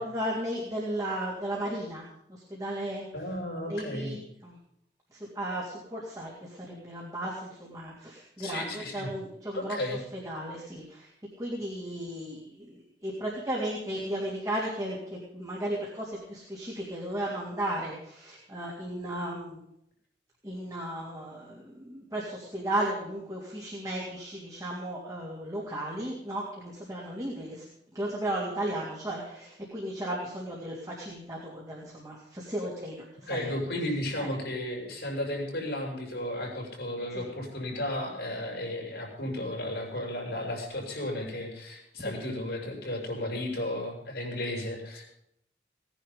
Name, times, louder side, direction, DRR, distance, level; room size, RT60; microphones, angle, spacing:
voice 1, 0.0-3.0 3.7-4.6 5.1-9.8 10.1-11.1 11.4-19.6 20.4-33.5 34.2-34.3 37.1-37.3 42.0-42.2, right 1 dB, 20° right, -4 dB, 3.1 m, -35 dB
voice 2, 3.1-4.2 8.4-9.1 9.5-10.0 33.3-45.0, left 1 dB, 70° left, 0 dB, 5.9 m, -34 dB
18.0 x 10.0 x 5.4 m, 0.75 s
head